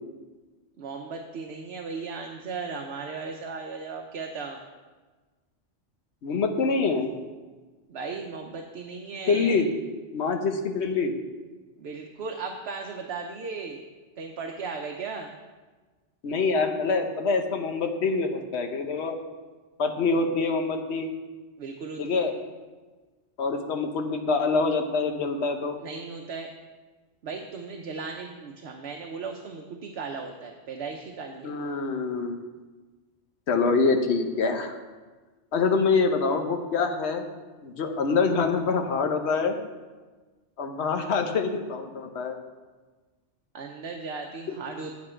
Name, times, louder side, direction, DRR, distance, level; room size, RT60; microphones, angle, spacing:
voice 1, 0.8-4.6 7.9-9.6 11.8-13.8 14.2-15.3 21.6-22.3 25.8-26.5 27.2-31.6 43.5-44.9, right 4 dB, 65° right, 3 dB, 1.0 m, -36 dB
voice 2, 6.2-7.1 9.3-9.7 10.1-11.1 16.2-19.2 19.8-21.1 22.0-22.3 23.4-25.8 31.4-32.4 33.5-34.7 35.5-37.2 37.6-39.6 40.6-42.4, left 4 dB, 70° left, 5 dB, 1.1 m, -25 dB
8.5 x 8.4 x 4.4 m, 1.3 s
omnidirectional pair, 1.2 m